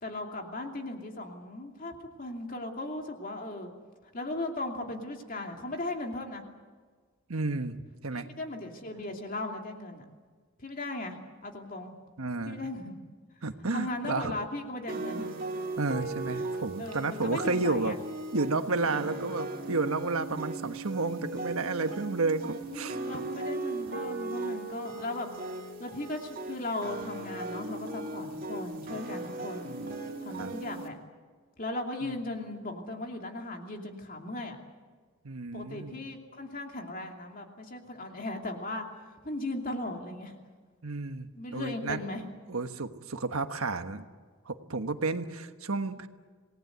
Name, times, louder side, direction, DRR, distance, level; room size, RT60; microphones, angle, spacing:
voice 1, 0.0-3.7 4.1-6.4 8.1-10.1 10.6-11.2 11.4-11.9 12.5-12.9 13.7-15.4 16.3-16.5 16.8-18.0 22.7-25.3 25.8-29.7 30.2-31.0 31.6-34.6 35.5-38.9 39.2-40.3 41.3-42.3, left 2 dB, 40° left, 3 dB, 2.7 m, -37 dB
voice 2, 7.3-8.3 12.2-12.7 13.4-14.4 15.8-18.0 18.3-23.3 29.6-30.0 30.4-30.5 32.0-32.2 35.2-36.0 40.8-42.0 42.5-44.0 44.5-46.1, right 3 dB, 80° right, 8 dB, 1.3 m, -32 dB
sound 1, 14.9-30.9, right 2 dB, 40° right, 2.7 m, -37 dB
27.5 x 19.0 x 8.1 m, 1.5 s
head